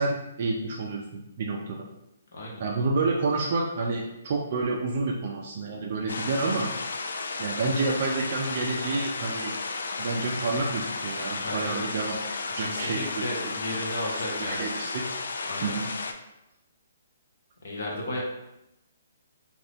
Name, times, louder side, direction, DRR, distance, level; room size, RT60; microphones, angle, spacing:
voice 1, 0.0-1.8 2.6-6.7 7.4-9.5 10.0-12.2 12.5-13.5 14.1-15.0 15.4-15.9, right 3 dB, 35° right, -1 dB, 0.3 m, -29 dB
voice 2, 2.3-2.6 11.4-11.9 12.6-14.7 15.5-15.8 17.6-18.2, left 1 dB, 55° left, -2 dB, 0.9 m, -34 dB
sound 1, 6.1-16.1, left 3 dB, 75° left, 0.3 m, -33 dB
2.6 x 2.4 x 3.4 m, 0.88 s
hypercardioid pair, 180°, 0 cm